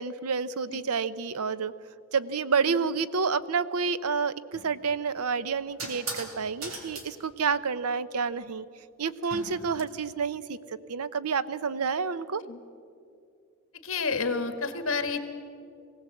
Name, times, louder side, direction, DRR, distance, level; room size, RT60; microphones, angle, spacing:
voice 1, 0.0-1.7 2.1-8.7 9.0-12.4, right 5 dB, 85° right, 15 dB, 0.7 m, -29 dB
sound 1, 4.5-4.7 5.8-6.3 6.6-7.1 9.2-9.8, right 2 dB, 65° right, 3.2 m, -38 dB
voice 2, 13.8-15.2, left 4 dB, 65° left, 9 dB, 1.6 m, -30 dB
20.0 x 17.0 x 7.8 m, 2.5 s
head